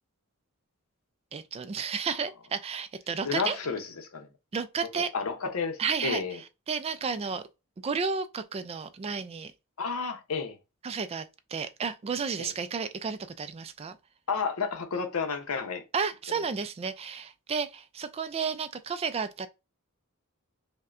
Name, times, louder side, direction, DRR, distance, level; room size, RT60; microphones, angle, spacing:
voice 1, 1.3-3.6 4.5-5.1 5.8-6.4 6.7-7.4 7.8-9.5 10.8-14.0 15.9-19.5, right 5 dB, 25° right, 0.3 m, -32 dB
voice 2, 3.2-4.3 5.0-6.4 9.8-10.5 12.4-12.5 14.3-15.8, left 5 dB, 70° left, 0.8 m, -31 dB
5.3 x 2.2 x 2.5 m
head